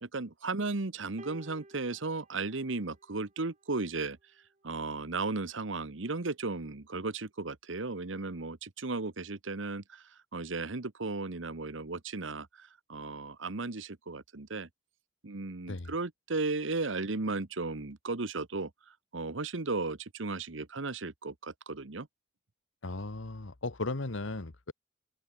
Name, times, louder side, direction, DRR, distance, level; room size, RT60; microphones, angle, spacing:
voice 1, 0.0-4.2 4.6-10.0 10.3-14.7 15.2-18.7 19.1-22.1, right 3 dB, 80° right, 1.2 m, -35 dB
sound 1, 1.2-3.7 4.7-4.8, right 2 dB, 35° right, 2.0 m, -54 dB
voice 2, 22.8-24.7, left 2 dB, 80° left, 1.3 m, -36 dB
open air
head